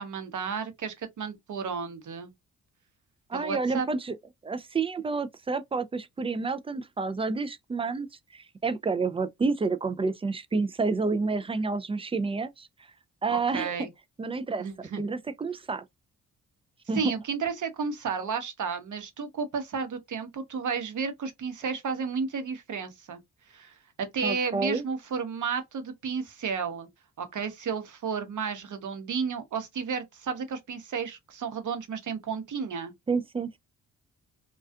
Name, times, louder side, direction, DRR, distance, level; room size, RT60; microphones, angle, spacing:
voice 1, 0.0-2.3 3.3-3.9 13.3-13.9 14.6-15.0 16.9-23.2 23.5-26.9 27.2-32.9, right 5 dB, 50° right, 0.9 m, -32 dB
voice 2, 3.3-4.2 4.4-8.1 8.3-12.7 13.2-13.9 14.2-15.8 16.9-17.1 24.2-24.8 33.1-33.6, right 4 dB, 15° right, 0.3 m, -29 dB
2.4 x 2.4 x 2.3 m
hypercardioid pair, 45°, 38 cm